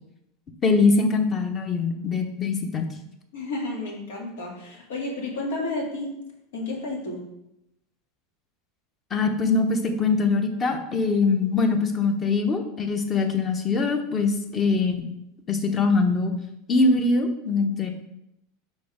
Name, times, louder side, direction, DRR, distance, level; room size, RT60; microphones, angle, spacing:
voice 1, 0.6-2.9 9.1-15.0 15.5-16.3 16.7-17.9, left 3 dB, 30° left, 6 dB, 0.9 m, -22 dB
voice 2, 3.3-6.1 6.5-7.2, left 2 dB, 85° left, -1 dB, 2.0 m, -31 dB
5.3 x 4.1 x 5.0 m, 0.85 s
supercardioid pair, 120°, 0 cm